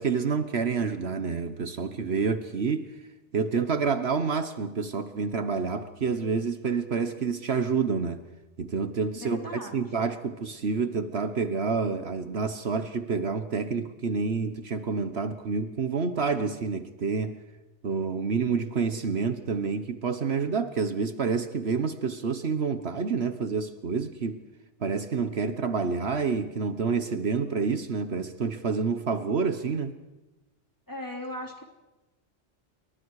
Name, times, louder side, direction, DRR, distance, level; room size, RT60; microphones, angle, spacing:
voice 1, 0.0-2.9 3.3-8.2 8.6-17.4 17.8-24.4 24.8-29.9, right 5 dB, 60° right, 9 dB, 1.4 m, -28 dB
voice 2, 9.1-9.8 30.9-31.6, left 1 dB, 15° left, 1 dB, 3.5 m, -37 dB
29.5 x 23.0 x 4.8 m, 1.1 s
omnidirectional pair, 1.2 m